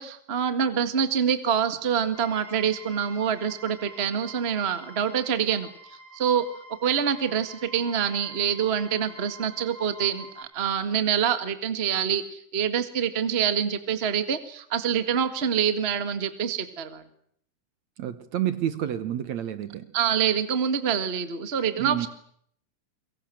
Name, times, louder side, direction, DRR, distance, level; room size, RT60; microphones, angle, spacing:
voice 1, 0.0-6.4 6.8-17.0 19.9-22.1, right 8 dB, 25° right, 1.3 m, -26 dB
sound 1, 2.1-10.4, right 1 dB, 20° left, 6.5 m, -47 dB
voice 2, 18.0-19.9 21.8-22.1, right 11 dB, 65° right, 2.2 m, -29 dB
25.0 x 23.5 x 7.8 m
omnidirectional pair, 3.9 m